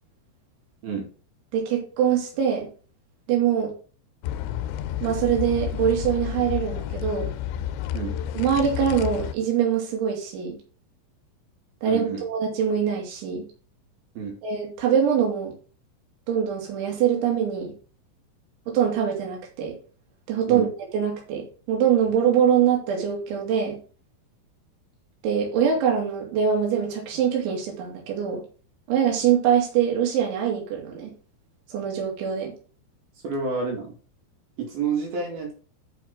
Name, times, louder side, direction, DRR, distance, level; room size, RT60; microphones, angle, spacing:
voice 1, 1.5-2.7 3.3-3.7 5.0-7.3 8.4-10.6 11.8-13.5 14.4-15.5 16.3-17.7 18.7-19.7 20.3-20.7 20.9-23.8 25.2-28.4 28.9-31.1 31.7-32.5, right 8 dB, 85° right, 0 dB, 4.8 m, -23 dB
sound 1, 4.2-9.3, left 11 dB, 85° left, 3.0 m, -30 dB
voice 2, 11.9-12.2 14.2-14.4 20.5-20.7 33.2-33.9 34.6-35.5, right 5 dB, 60° right, 0 dB, 3.6 m, -29 dB
11.0 x 5.9 x 3.7 m, 0.38 s
omnidirectional pair, 5.2 m